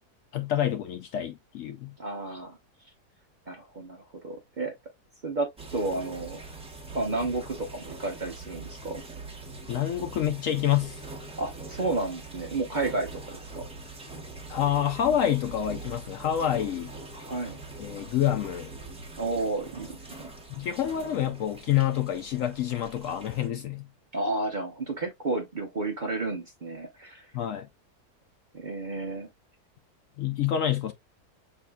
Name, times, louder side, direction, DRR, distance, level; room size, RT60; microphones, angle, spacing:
voice 1, 0.3-1.9 9.7-11.0 14.5-16.9 17.8-18.7 20.5-23.9 27.3-27.7 30.2-30.9, left 10 dB, 70° left, 0.8 m, -27 dB
voice 2, 2.0-2.6 3.5-4.7 5.2-6.4 6.9-9.0 11.4-13.6 17.1-17.6 19.2-20.3 24.1-27.3 28.5-29.3, right 2 dB, 40° right, 0.7 m, -32 dB
sound 1, 5.6-23.5, right 3 dB, 5° right, 0.7 m, -43 dB
6.3 x 3.6 x 2.2 m
omnidirectional pair, 1.7 m